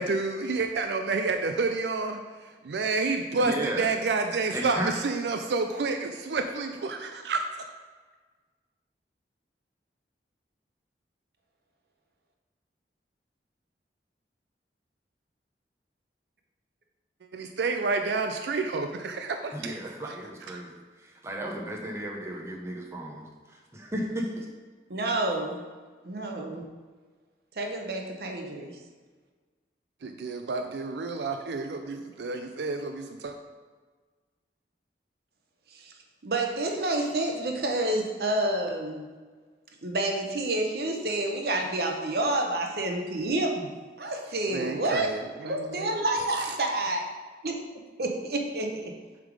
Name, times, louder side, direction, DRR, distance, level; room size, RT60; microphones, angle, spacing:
voice 1, 0.0-2.2 2.6-7.4 17.3-19.8 30.0-33.3 44.5-45.9, right 3 dB, 75° right, 5 dB, 0.4 m, -29 dB
voice 2, 3.4-3.9 4.5-4.9 19.5-20.7 21.0-24.5, right 1 dB, 15° right, -1 dB, 0.9 m, -34 dB
voice 3, 24.9-25.6 26.0-26.6 27.6-28.8 35.7-35.9 36.2-39.0 39.8-43.7 44.0-47.1 47.4-47.6 48.0-48.9, right 2 dB, 60° right, 3 dB, 0.9 m, -29 dB
7.4 x 3.6 x 4.8 m, 1.4 s
head